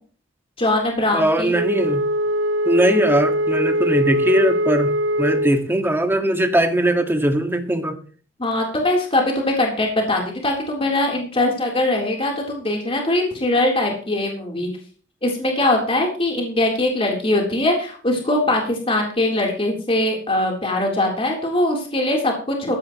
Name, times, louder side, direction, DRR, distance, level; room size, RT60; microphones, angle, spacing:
voice 1, 0.6-1.5 8.4-14.7 15.2-22.8, left 1 dB, 30° left, 0 dB, 3.7 m, -21 dB
voice 2, 1.1-2.1 2.7-4.9 5.2-8.0, right 1 dB, 10° right, 5 dB, 1.9 m, -20 dB
Wind instrument woodwind instrument, 1.5-5.7, equal, 70° right, 1.1 m, -22 dB
16.0 x 14.5 x 3.1 m, 0.43 s
head